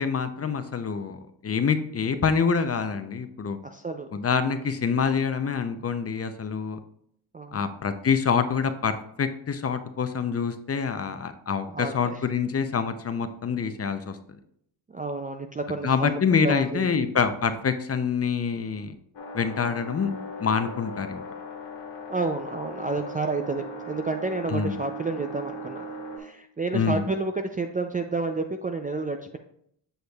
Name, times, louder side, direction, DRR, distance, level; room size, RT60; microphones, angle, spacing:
voice 1, 0.0-3.6 4.1-6.8 7.5-14.2 15.8-19.0 19.3-20.1 20.4-21.2 24.5-24.7 26.7-27.0, left 6 dB, 30° left, 10 dB, 0.5 m, -26 dB
voice 2, 3.6-4.2 7.3-7.7 11.7-12.2 14.9-17.0 22.1-29.4, right 3 dB, 20° right, 5 dB, 0.3 m, -30 dB
sound 1, 19.1-26.2, left 1 dB, 65° left, 2.0 m, -38 dB
7.9 x 6.4 x 2.3 m, 0.70 s
cardioid pair, 80°, 49 cm